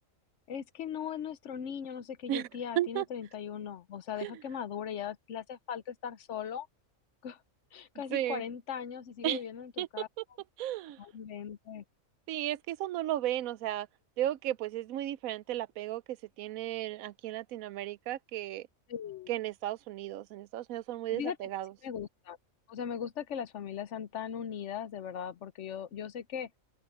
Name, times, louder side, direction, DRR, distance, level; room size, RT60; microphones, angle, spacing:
voice 1, 0.5-6.7 7.2-7.4 7.7-10.1 11.0-11.8 18.9-19.3 21.1-21.4 21.8-22.4 22.7-26.5, left 8 dB, 65° left, 1.0 m, -39 dB
voice 2, 8.1-8.4 9.2-9.4 9.8-9.9 10.2-10.3 10.6-11.0 12.3-13.9 14.2-18.7 19.3-21.7, right 13 dB, 85° right, 1.0 m, -34 dB
open air
omnidirectional pair, 1.4 m